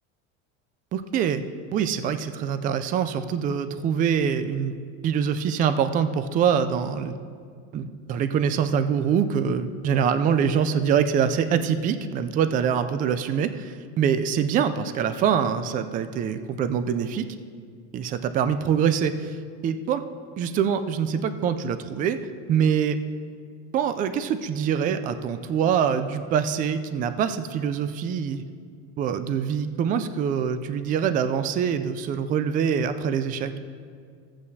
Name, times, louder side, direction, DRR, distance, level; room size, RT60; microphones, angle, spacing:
voice 1, 0.9-1.4 1.7-4.7 5.0-7.1 7.7-17.3 17.9-19.4 19.6-20.0 20.4-22.2 22.5-23.0 23.7-28.4 29.0-33.5, right 7 dB, 25° right, 11 dB, 0.4 m, -24 dB
15.0 x 8.7 x 2.8 m, 2.1 s
supercardioid pair, 130°, 34 cm